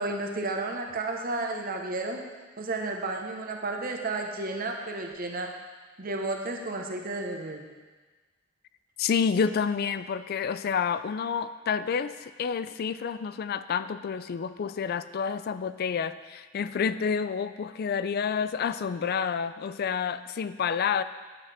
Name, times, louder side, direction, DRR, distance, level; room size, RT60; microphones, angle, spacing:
voice 1, 0.0-2.2 2.6-5.5 6.0-7.6, right 2 dB, 45° right, 2 dB, 1.0 m, -32 dB
voice 2, 9.0-21.0, left 6 dB, 50° left, 13 dB, 0.3 m, -29 dB
11.0 x 8.0 x 3.4 m, 1.3 s
head